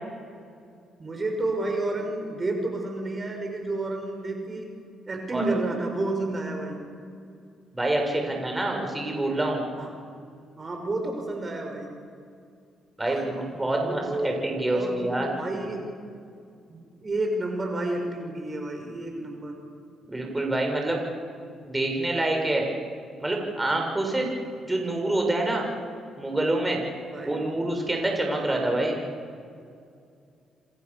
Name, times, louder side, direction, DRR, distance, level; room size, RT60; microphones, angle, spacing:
voice 1, 1.0-4.7 5.1-6.8 9.8-9.9 10.5-11.9 13.1-13.3 13.8-14.3 14.7-15.9 16.7-19.6 27.1-27.8 28.3-29.0, right 2 dB, 30° right, 3 dB, 6.3 m, -31 dB
voice 2, 7.7-9.7 13.0-15.3 20.1-21.0 21.6-22.7 23.2-24.3 24.7-25.7 26.2-26.8 27.2-29.0, right 2 dB, 15° right, 1 dB, 7.0 m, -26 dB
29.0 x 26.5 x 7.3 m, 2.4 s
cardioid pair, 90°, 0 cm